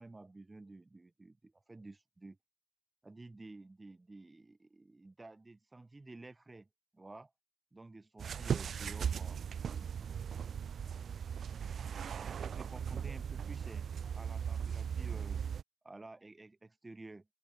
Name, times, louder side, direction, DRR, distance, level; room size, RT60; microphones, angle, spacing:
voice 1, 0.0-2.4 3.0-6.7 6.9-7.3 7.7-10.1 12.4-13.9 14.2-15.4 15.8-17.3, right 2 dB, 25° right, 2.1 m, -52 dB
sound 1, 8.2-15.6, right 7 dB, 80° right, 0.7 m, -38 dB
open air
cardioid pair, 75°, 0 cm